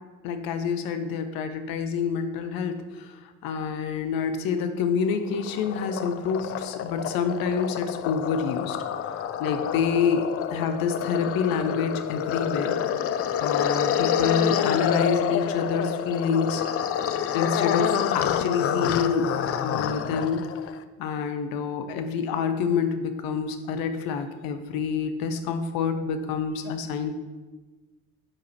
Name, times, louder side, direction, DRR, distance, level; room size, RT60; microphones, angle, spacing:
voice 1, 0.2-8.8 9.0-12.8 13.4-16.6 17.3-20.5 21.0-27.1, left 6 dB, 60° left, 8 dB, 0.9 m, -27 dB
sound 1, 5.1-20.8, left 9 dB, 35° left, 0.5 m, -28 dB
8.7 x 4.8 x 4.5 m, 1.2 s
figure-of-eight pair, 45°, 40 cm